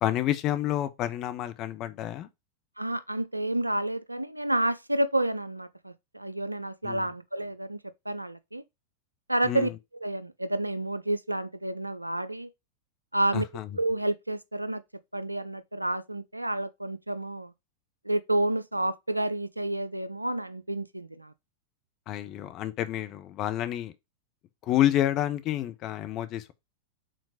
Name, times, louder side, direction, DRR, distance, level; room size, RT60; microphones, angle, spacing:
voice 1, 0.0-2.3 6.8-7.1 9.4-9.7 13.3-13.7 22.1-23.9 24.6-26.5, left 12 dB, 35° left, 0.9 m, -29 dB
voice 2, 2.8-7.8 8.1-8.6 9.3-9.7 10.0-12.5 13.1-13.4 13.7-14.8 15.1-17.5 18.0-21.3, right 1 dB, 85° right, 0.5 m, -29 dB
5.1 x 3.8 x 4.9 m
figure-of-eight pair, 90°, 0 cm